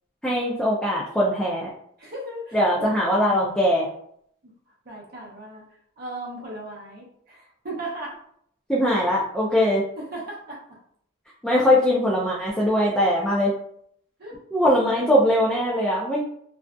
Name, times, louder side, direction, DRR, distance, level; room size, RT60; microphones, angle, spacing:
voice 1, 0.2-1.7 2.5-3.9 8.7-9.8 11.4-13.5 14.5-16.2, equal, 5° left, -6 dB, 0.3 m, -21 dB
voice 2, 2.0-2.9 4.4-4.5 4.9-5.6 6.0-8.2 9.6-9.7 10.0-10.6 11.6-11.7 14.2-14.4 14.7-15.1, right 1 dB, 50° right, -3 dB, 0.6 m, -37 dB
2.5 x 2.3 x 2.2 m, 0.68 s
head